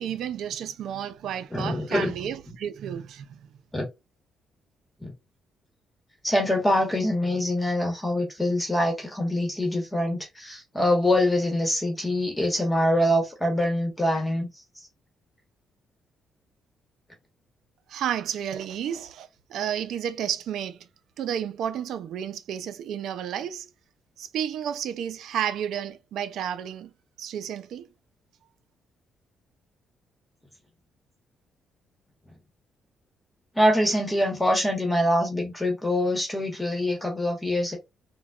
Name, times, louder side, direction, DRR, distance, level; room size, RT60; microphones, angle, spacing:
voice 1, 0.0-3.5 17.9-20.9 21.2-23.7 24.2-26.9 27.2-27.9, right 9 dB, 75° right, 0.4 m, -31 dB
voice 2, 1.5-2.1 3.7-3.8 5.0-5.1 6.2-14.6 33.5-37.8, left 1 dB, 10° left, 1.2 m, -24 dB
3.9 x 2.2 x 2.3 m
cardioid pair, 90°, 0 cm